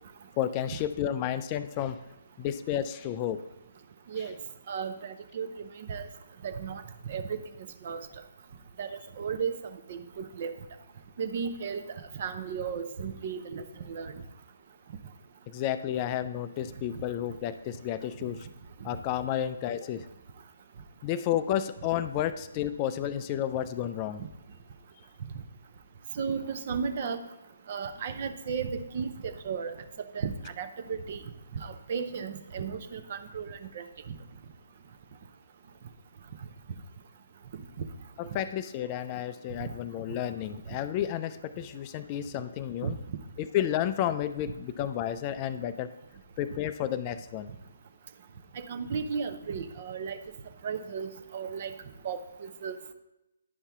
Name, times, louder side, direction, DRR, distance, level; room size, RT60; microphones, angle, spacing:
voice 1, 0.4-2.0 2.4-3.4 15.5-18.5 18.8-20.1 21.0-24.2 38.2-43.0 43.4-45.9 46.4-47.5, left 11 dB, 30° left, 12 dB, 0.3 m, -31 dB
voice 2, 4.7-6.1 6.4-6.8 7.1-7.4 7.8-8.1 8.8-8.9 9.2-9.6 9.9-10.5 11.2-11.8 12.2-14.1 26.1-27.2 27.7-29.7 30.1-31.2 31.5-33.8 42.8-43.2 48.5-50.2 50.6-51.7 52.0-52.7, right 6 dB, 45° right, 9 dB, 0.7 m, -34 dB
10.0 x 5.5 x 3.5 m, 0.91 s
figure-of-eight pair, 135°, 0 cm